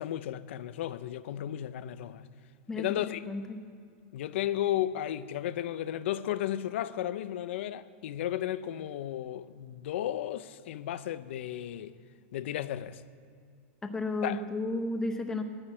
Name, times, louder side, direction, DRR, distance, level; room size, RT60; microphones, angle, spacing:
voice 1, 0.0-2.2 2.8-3.2 4.1-11.9 12.3-13.0 14.2-14.4, left 12 dB, 60° left, 0.5 m, -34 dB
voice 2, 2.7-3.6 13.8-15.4, left 2 dB, 10° left, 0.8 m, -33 dB
10.5 x 9.8 x 8.9 m
supercardioid pair, 170°, 7 cm